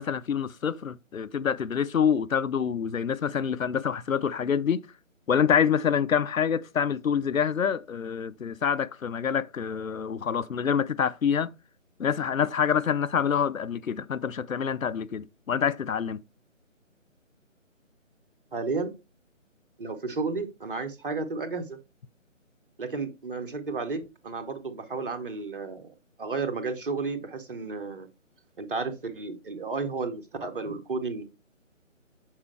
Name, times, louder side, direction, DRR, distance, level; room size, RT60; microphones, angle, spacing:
voice 1, 0.0-4.8 5.3-11.5 12.0-16.2, left 7 dB, 85° left, 0.6 m, -26 dB
voice 2, 18.5-18.9 19.8-21.8 22.8-28.1 28.6-31.2, right 4 dB, 40° right, 1.0 m, -32 dB
7.3 x 4.8 x 3.2 m
figure-of-eight pair, 150°, 39 cm